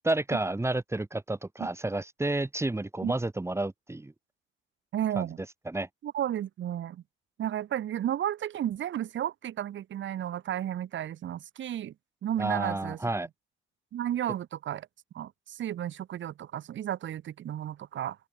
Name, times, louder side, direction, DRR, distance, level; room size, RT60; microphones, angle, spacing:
voice 1, 0.0-4.1 5.2-5.3 5.7-5.9 12.4-13.3, right 2 dB, 15° right, 2.4 m, -30 dB
voice 2, 4.9-5.4 6.0-7.0 7.4-11.9 12.2-13.0 13.9-14.9 15.1-18.2, right 11 dB, 70° right, 6.5 m, -33 dB
open air
cardioid pair, 90°, 20 cm